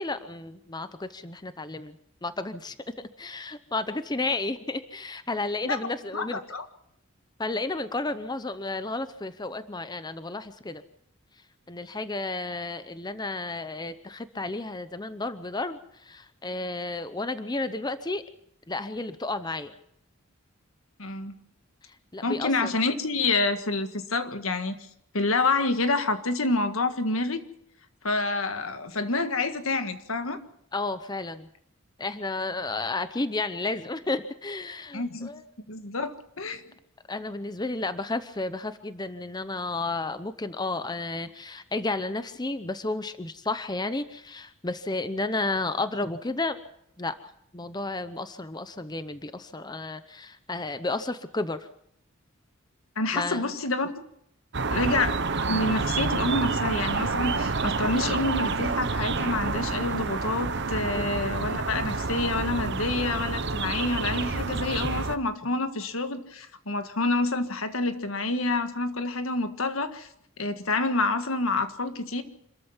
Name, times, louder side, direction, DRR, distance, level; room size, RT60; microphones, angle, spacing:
voice 1, 0.0-6.4 7.4-10.8 11.7-18.2 18.7-19.7 21.8-22.7 30.7-31.5 32.0-35.4 37.1-46.6 47.0-47.1 47.5-51.7 53.1-53.5 61.0-61.1, left 2 dB, 20° left, 12 dB, 0.8 m, -32 dB
voice 2, 6.1-6.6 21.0-21.4 22.2-24.8 25.1-27.4 28.0-30.4 34.9-35.3 35.7-36.6 53.0-53.9 54.7-70.1 70.4-72.2, left 3 dB, 75° left, 9 dB, 1.7 m, -28 dB
sound 1, 54.5-65.2, right 4 dB, 55° right, 1.1 m, -28 dB
26.5 x 14.0 x 7.2 m, 0.75 s
head